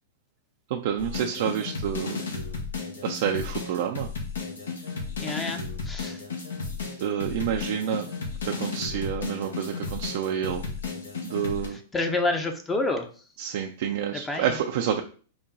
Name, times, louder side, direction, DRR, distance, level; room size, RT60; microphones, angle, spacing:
voice 1, 0.7-2.2 3.0-4.1 7.0-8.1 8.4-10.6 11.2-11.8 13.4-15.0, right 9 dB, 60° right, 2 dB, 0.4 m, -28 dB
sound 1, 1.0-11.7, left 4 dB, 85° left, 1.0 m, -34 dB
voice 2, 5.2-5.6 5.9-6.2 11.7-13.1 14.1-14.6, left 2 dB, 15° left, 5 dB, 0.6 m, -28 dB
4.0 x 2.2 x 3.8 m, 0.39 s
hypercardioid pair, 120°, 0 cm